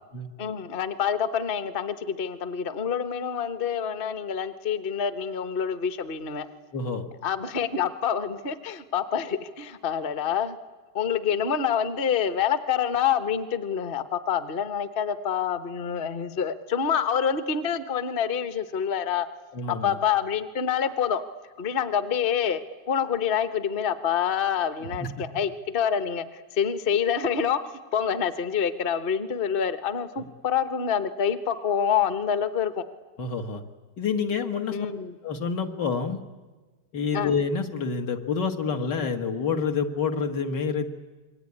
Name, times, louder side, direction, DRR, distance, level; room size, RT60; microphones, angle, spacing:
voice 1, 0.4-6.5 7.2-10.6 10.9-19.3 19.7-21.2 21.6-22.6 22.9-27.6 27.9-32.8 34.7-35.2 37.1-37.3, left 8 dB, 40° left, 12 dB, 1.0 m, -27 dB
voice 2, 6.7-7.1 19.5-20.0 25.0-25.1 33.2-33.6 34.0-34.8 35.2-36.2 36.9-40.9, left 5 dB, 75° left, 5 dB, 2.3 m, -28 dB
27.0 x 22.5 x 9.7 m, 1.3 s
omnidirectional pair, 1.9 m